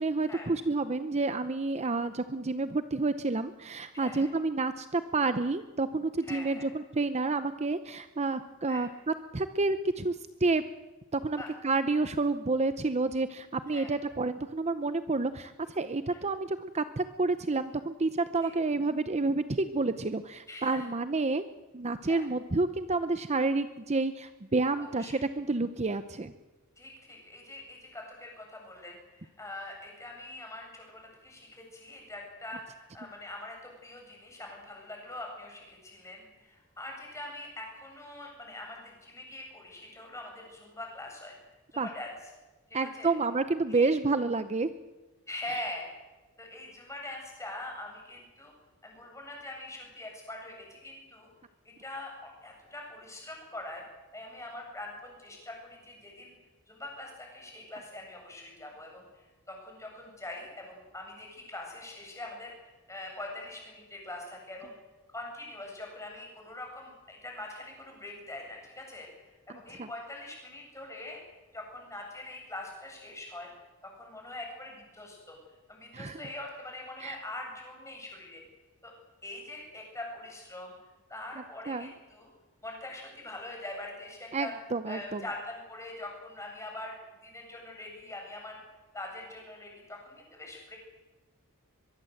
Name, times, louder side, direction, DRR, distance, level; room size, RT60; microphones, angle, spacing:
voice 1, 0.0-10.6 11.1-21.4 21.7-26.3 41.8-41.9 42.7-44.7 45.5-45.6 69.8-69.9 75.9-76.2 77.0-77.1 81.7-81.9 84.3-85.2, right 3 dB, 30° right, 11 dB, 0.7 m, -29 dB
voice 2, 3.9-4.3 6.2-6.7 8.7-8.9 11.4-11.5 13.7-13.9 16.1-16.2 18.4-18.5 20.5-20.9 22.0-22.3 24.8-25.2 26.8-41.4 41.7-42.1 42.7-43.1 43.7-43.9 45.3-45.9 46.4-48.5 48.8-51.3 51.6-53.8 54.1-56.3 56.7-64.7 65.1-69.1 69.5-71.2 71.5-73.5 73.9-75.4 75.7-78.4 78.8-78.9 79.2-80.7 81.1-82.3 82.6-84.5 84.9-87.0 87.2-88.6 88.9-90.8, left 2 dB, 15° left, 1 dB, 7.6 m, -43 dB
23.0 x 22.5 x 7.9 m, 1.2 s
head